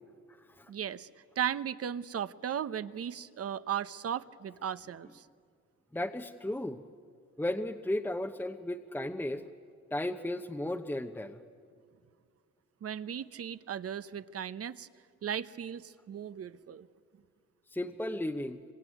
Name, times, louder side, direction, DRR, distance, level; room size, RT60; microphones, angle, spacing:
voice 1, 0.7-1.1 1.4-5.2 12.8-14.9 15.2-16.9, right 9 dB, 50° right, 14 dB, 0.9 m, -36 dB
voice 2, 5.9-6.8 7.4-9.4 9.9-11.4 17.7-18.6, left 1 dB, 5° left, 3 dB, 1.0 m, -34 dB
26.0 x 24.5 x 9.3 m, 2.2 s
cardioid pair, 90°, 30 cm